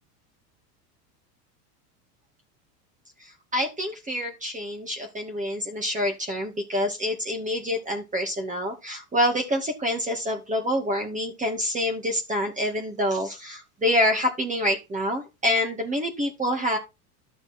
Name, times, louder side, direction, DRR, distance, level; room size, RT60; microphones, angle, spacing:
voice 1, 3.2-16.8, left 1 dB, 15° right, 3 dB, 2.2 m, -27 dB
12.0 x 6.6 x 4.5 m, 0.25 s
supercardioid pair, 115°, 47 cm